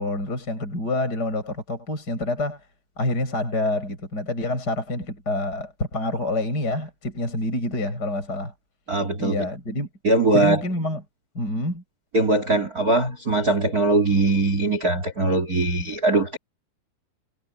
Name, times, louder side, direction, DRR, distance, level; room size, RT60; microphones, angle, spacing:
voice 1, 0.0-2.6 3.0-8.5 9.2-9.9 10.3-11.0 11.3-11.8, left 1 dB, 20° left, 8.2 m, -27 dB
voice 2, 8.9-9.4 10.0-10.6 12.1-16.4, right 2 dB, 40° right, 1.3 m, -21 dB
omnidirectional pair, 5.4 m